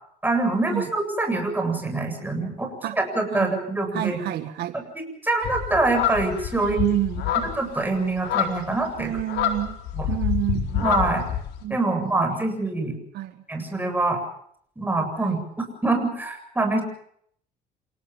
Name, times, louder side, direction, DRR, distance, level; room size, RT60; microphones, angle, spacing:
voice 1, 0.2-4.2 4.7-6.8 7.6-9.1 10.0-10.1 10.8-11.3 11.7-12.9 13.5-14.2 14.8-16.8, right 2 dB, 10° right, 4 dB, 8.0 m, -25 dB
voice 2, 3.9-4.8 6.6-7.5 9.0-9.8 10.1-11.0 11.6-11.8 12.1-12.5 13.1-13.4 15.2-15.4, right 14 dB, 75° right, 9 dB, 1.8 m, -29 dB
sound 1, 5.4-11.6, left 9 dB, 80° left, 4.4 m, -27 dB
28.5 x 18.0 x 7.2 m, 0.66 s
cardioid pair, 110°, 17 cm